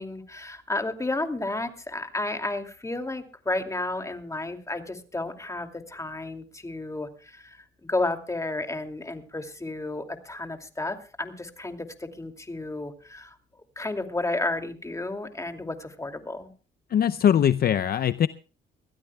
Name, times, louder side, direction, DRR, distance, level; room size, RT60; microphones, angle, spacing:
voice 1, 0.0-13.4 13.8-16.5, left 2 dB, 15° left, 5 dB, 2.5 m, -32 dB
voice 2, 16.9-18.3, left 9 dB, 50° left, 12 dB, 0.6 m, -21 dB
23.5 x 15.5 x 2.3 m, 0.36 s
cardioid pair, 90°, 20 cm